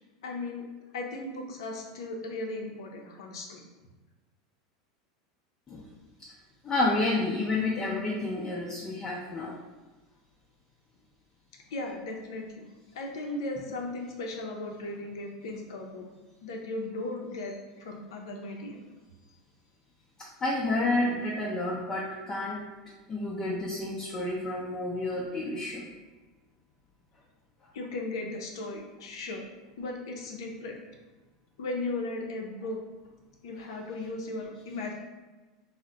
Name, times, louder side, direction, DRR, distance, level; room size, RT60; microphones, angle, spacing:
voice 1, 0.2-0.7 0.9-3.7 11.7-12.6 12.9-16.1 16.4-18.8 27.7-29.4 29.8-30.8 31.6-32.8 33.4-34.9, left 2 dB, 80° left, 1 dB, 0.5 m, -36 dB
voice 2, 6.6-9.5 20.2-22.6 23.1-25.9, left 2 dB, 25° left, -5 dB, 0.5 m, -30 dB
2.4 x 2.0 x 3.9 m, 1.2 s
hypercardioid pair, 110°, 3 cm